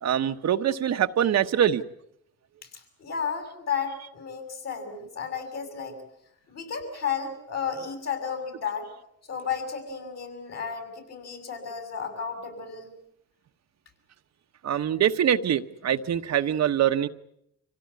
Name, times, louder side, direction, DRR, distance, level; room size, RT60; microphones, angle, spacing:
voice 1, 0.0-1.8 14.6-17.1, right 9 dB, 60° right, 8 dB, 1.1 m, -24 dB
voice 2, 3.0-6.0 6.5-8.9 9.3-12.9, left 6 dB, 60° left, 6 dB, 7.1 m, -33 dB
26.0 x 17.0 x 9.7 m, 0.78 s
cardioid pair, 90°, 30 cm